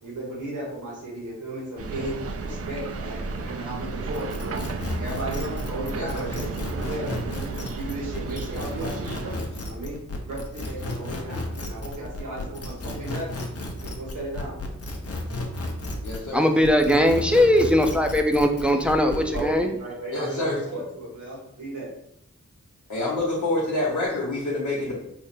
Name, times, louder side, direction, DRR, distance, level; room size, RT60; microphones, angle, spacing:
voice 1, 0.0-4.6 5.0-10.0 10.2-13.3 13.8-14.6 19.3-21.9, right 1 dB, 80° right, -6 dB, 1.4 m, -35 dB
sound 1, 1.8-9.4, right 4 dB, 50° right, 0.4 m, -33 dB
sound 2, 4.1-16.3 16.6-19.5, left 2 dB, 55° left, 0.7 m, -33 dB
voice 2, 5.9-6.3 16.0-16.4 20.1-20.6 22.9-25.0, left 2 dB, 80° left, -6 dB, 1.0 m, -27 dB
voice 3, 16.3-19.7, equal, 5° right, 4 dB, 0.5 m, -20 dB
3.5 x 2.0 x 4.1 m, 0.75 s
cardioid pair, 40°, 30 cm